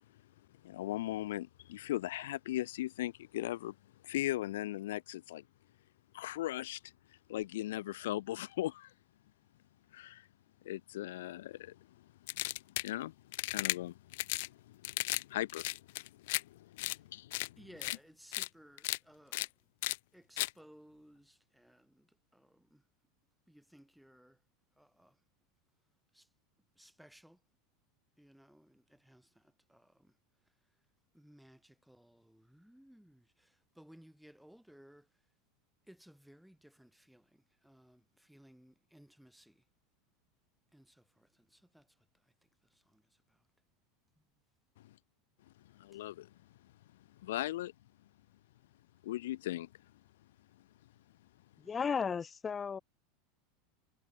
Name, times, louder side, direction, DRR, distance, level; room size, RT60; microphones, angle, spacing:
voice 1, 0.6-3.7 4.0-5.4 6.1-6.8 7.3-8.9 9.9-10.3 10.6-11.8 12.8-13.1 13.4-14.0 14.4-15.8 16.3-17.6 44.8-44.9 45.7-46.3 47.2-47.7 49.0-49.7, left 15 dB, 85° left, 1.1 m, -38 dB
sound 1, 12.3-12.9 13.3-13.8 14.1-14.5 14.8-15.2 15.5-16.4 16.8-17.0 17.3-17.5 17.8-18.0 18.3-18.5 18.8-19.0 19.3-19.5 19.8-20.0 20.4-20.5, left 20 dB, 65° left, 1.8 m, -35 dB
voice 2, 17.6-19.5 20.1-22.8 23.5-24.4 24.8-25.2 26.1-26.3 26.8-27.4 28.2-29.4 29.7-30.1 31.1-35.1 35.9-39.6 40.7-41.9 42.7-43.0, equal, ahead, 5.3 m, -60 dB
voice 3, 51.6-52.8, left 6 dB, 15° left, 2.7 m, -34 dB
supercardioid pair, 165°, 0 cm